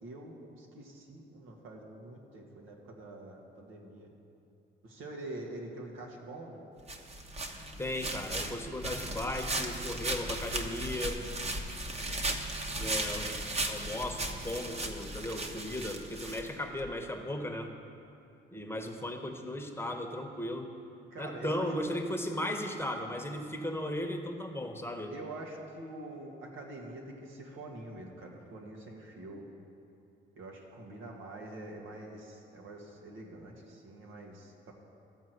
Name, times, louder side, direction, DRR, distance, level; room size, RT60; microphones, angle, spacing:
voice 1, 0.0-4.1 4.8-6.6 13.3-13.6 21.1-21.7 22.1-22.4 25.1-29.4 30.3-34.7, right 2 dB, 85° right, 0 dB, 1.7 m, -45 dB
sound 1, 6.9-16.9, right 2 dB, 30° right, 1.1 m, -36 dB
voice 2, 7.8-11.2 12.7-13.3 13.7-17.7 18.5-20.7 21.2-25.2, left 1 dB, 10° left, 3 dB, 1.0 m, -36 dB
13.5 x 4.6 x 7.9 m, 2.7 s
cardioid pair, 90°, 20 cm